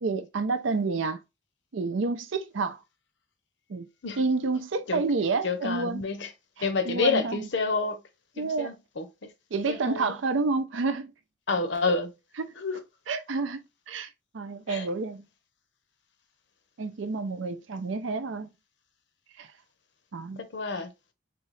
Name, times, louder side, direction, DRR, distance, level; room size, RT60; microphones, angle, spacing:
voice 1, 0.0-1.2 1.7-2.8 3.7-3.9 4.2-6.0 6.6-7.5 8.4-8.7 9.5-11.1 12.4-12.5 13.1-15.3 16.8-18.5 19.4-19.5 20.1-20.4, right 3 dB, 75° right, 0.5 m, -29 dB
voice 2, 5.4-6.3 6.6-8.0 8.4-9.3 9.7-10.1 11.5-12.1 12.6-12.8 14.7-14.9 20.4-20.9, left 4 dB, 65° left, 0.7 m, -29 dB
3.8 x 2.8 x 3.1 m
head